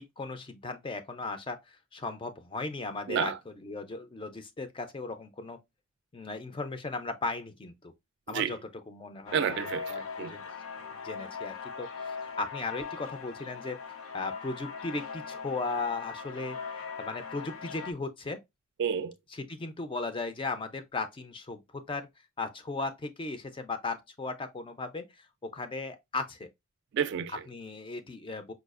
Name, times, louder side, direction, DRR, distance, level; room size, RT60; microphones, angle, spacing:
voice 1, 0.0-5.6 6.1-7.9 8.3-9.4 9.9-10.4 10.9-13.8 14.1-18.4 19.3-22.1 22.4-26.5 27.3-28.5, left 3 dB, 25° left, 0.4 m, -37 dB
sound 1, 9.3-17.9, left 6 dB, 85° left, 0.6 m, -40 dB
voice 2, 9.3-10.3 18.8-19.1 26.9-27.3, right 7 dB, 60° right, 0.3 m, -30 dB
4.7 x 2.3 x 2.4 m
head